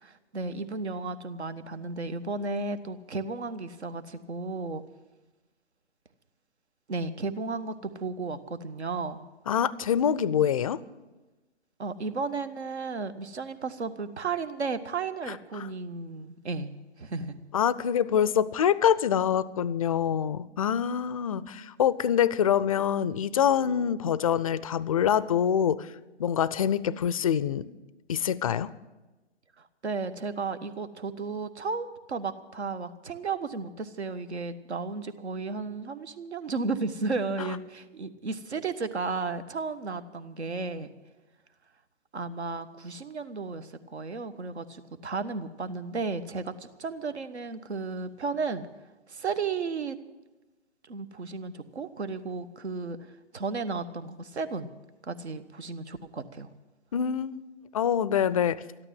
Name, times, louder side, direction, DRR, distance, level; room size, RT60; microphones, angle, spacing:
voice 1, 0.0-4.8 6.9-9.2 11.8-16.7 17.0-17.4 21.5-21.7 29.6-40.9 42.1-48.7 49.1-50.0 50.9-53.0 53.3-54.7 55.0-56.5, right 4 dB, 70° right, 12 dB, 1.3 m, -34 dB
voice 2, 9.5-10.8 17.5-25.9 26.2-27.7 28.1-28.7 37.4-37.5 56.9-57.4 57.7-58.6, left 9 dB, 30° left, 19 dB, 0.4 m, -25 dB
13.5 x 12.0 x 7.6 m, 1.1 s
figure-of-eight pair, 130°, 34 cm